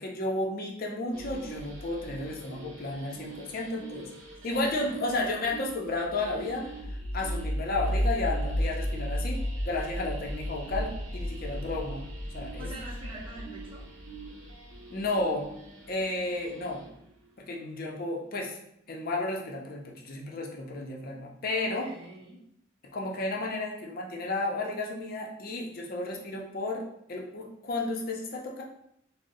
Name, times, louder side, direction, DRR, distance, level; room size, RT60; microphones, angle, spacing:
voice 1, 0.0-4.1 4.4-6.7 7.1-12.1 12.3-12.7 14.9-15.5 15.9-16.8 17.4-18.6 18.9-21.9 22.9-26.8 27.1-28.6, left 2 dB, 50° left, 0 dB, 0.5 m, -32 dB
sound 1, 1.1-17.0, equal, 70° right, 0.6 m, -36 dB
voice 2, 4.4-5.3 12.6-13.9 21.5-22.4, right 1 dB, 25° right, -4 dB, 0.7 m, -44 dB
3.7 x 2.0 x 2.6 m, 0.73 s
head